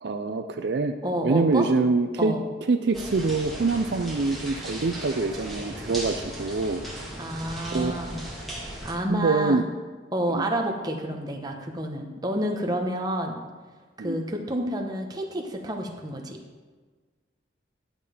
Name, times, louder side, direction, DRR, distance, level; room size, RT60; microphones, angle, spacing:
voice 1, 0.0-1.0 1.2-2.3 2.7-7.1 7.7-8.0 9.1-9.6 10.3-10.4 14.0-14.2, right 3 dB, 60° right, 7 dB, 0.5 m, -25 dB
voice 2, 1.0-1.7 2.2-2.4 7.2-8.2 8.8-9.6 10.1-13.3 14.0-16.4, right 1 dB, 20° right, 2 dB, 1.0 m, -29 dB
sound 1, 2.9-9.0, right 1 dB, ahead, 1.7 m, -37 dB
11.0 x 6.6 x 5.1 m, 1.4 s
head